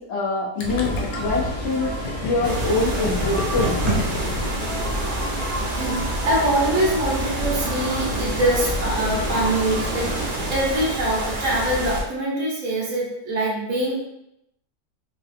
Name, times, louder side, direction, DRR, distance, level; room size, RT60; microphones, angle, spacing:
voice 1, 0.1-1.9 2.2-3.8, left 3 dB, 45° left, -6 dB, 1.2 m, -24 dB
Gurgling, 0.6-5.3, left 4 dB, 90° left, 1.2 m, -31 dB
sound 1, 0.6-10.6, right 1 dB, 30° right, 0.8 m, -30 dB
sound 2, 2.4-12.0, right 1 dB, 85° right, 0.3 m, -29 dB
voice 2, 5.7-14.0, right 1 dB, 60° right, -4 dB, 1.5 m, -24 dB
3.8 x 3.1 x 2.5 m, 0.80 s
omnidirectional pair, 1.7 m